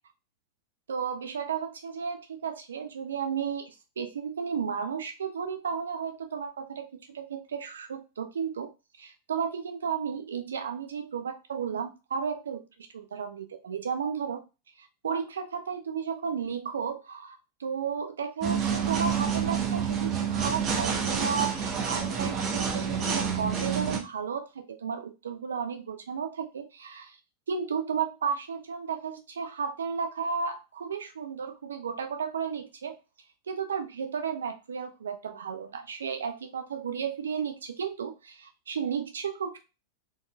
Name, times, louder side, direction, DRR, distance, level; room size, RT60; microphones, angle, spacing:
voice 1, 0.9-6.9 7.1-8.7 9.0-12.6 12.9-14.4 14.8-27.2 27.5-33.0 33.5-39.6, right 6 dB, 65° right, 7 dB, 0.5 m, -33 dB
sound 1, 18.4-24.0, right 7 dB, 30° right, 0.9 m, -28 dB
4.0 x 3.6 x 2.2 m, 0.28 s
figure-of-eight pair, 90°, 0 cm